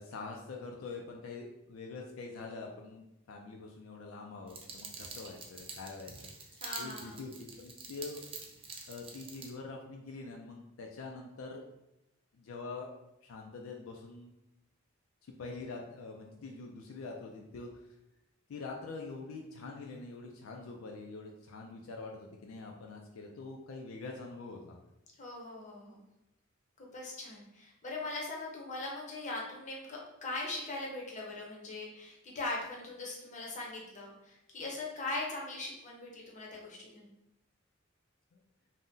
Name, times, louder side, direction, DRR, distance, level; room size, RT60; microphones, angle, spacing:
voice 1, 0.0-6.1 6.8-8.2 8.9-11.6 12.3-12.9 13.2-14.3 15.2-17.7 18.5-24.8 38.3-38.4, left 3 dB, 75° left, 1 dB, 0.4 m, -45 dB
sound 1, 4.5-9.5, right 4 dB, 30° right, 0.4 m, -47 dB
voice 2, 6.6-7.2 25.2-26.0 26.8-37.1, left 2 dB, 35° left, -2 dB, 0.7 m, -40 dB
2.6 x 2.1 x 3.6 m, 0.90 s
head